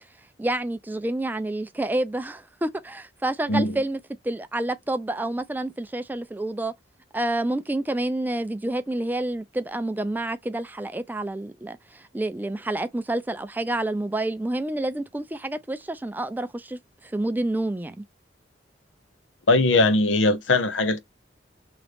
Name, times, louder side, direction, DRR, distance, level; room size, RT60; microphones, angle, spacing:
voice 1, 0.4-6.7 7.1-18.0, right 1 dB, 10° right, 0.4 m, -28 dB
voice 2, 19.5-21.0, left 2 dB, 85° left, 0.7 m, -20 dB
3.1 x 2.4 x 3.3 m
head